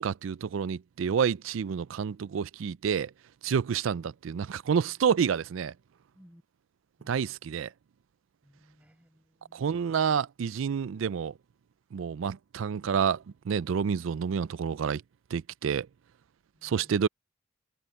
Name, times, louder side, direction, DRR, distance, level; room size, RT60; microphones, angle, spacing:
voice 1, 0.0-3.1 3.4-5.7 7.1-7.7 9.5-11.3 11.9-15.0 15.3-15.9 16.6-17.1, right 7 dB, 75° right, 0.4 m, -29 dB
voice 2, 8.4-9.7 16.5-17.0, equal, 5° right, 5.9 m, -59 dB
head